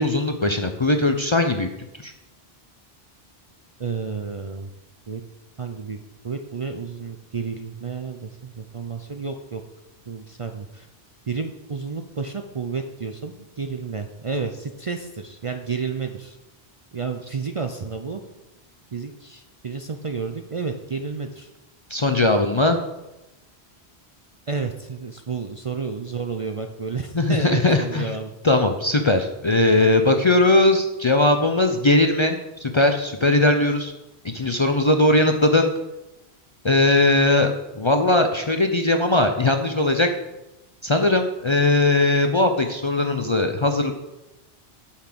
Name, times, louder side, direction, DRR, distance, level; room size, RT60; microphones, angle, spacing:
voice 1, 0.0-1.7 2.0-2.1 21.9-22.8 27.1-28.1 28.4-33.9 34.2-35.7 36.6-40.1 40.8-43.9, left 2 dB, 35° left, 6 dB, 0.5 m, -19 dB
voice 2, 3.8-4.7 5.1-5.2 5.6-6.0 6.2-9.6 10.1-10.9 11.3-16.4 16.9-18.2 18.9-21.5 24.5-28.3, right 5 dB, 40° right, 5 dB, 0.5 m, -31 dB
8.5 x 5.7 x 6.0 m, 0.98 s
omnidirectional pair, 1.1 m